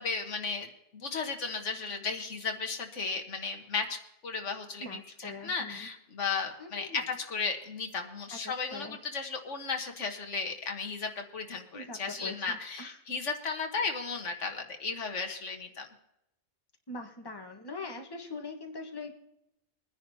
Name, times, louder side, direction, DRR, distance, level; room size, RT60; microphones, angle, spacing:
voice 1, 0.0-15.9, left 4 dB, 85° left, 5 dB, 1.7 m, -35 dB
voice 2, 4.8-5.9 6.6-7.0 8.3-9.0 11.7-13.0 16.9-19.2, left 3 dB, 20° left, 2 dB, 1.3 m, -42 dB
22.5 x 10.0 x 2.8 m, 0.84 s
omnidirectional pair, 1.2 m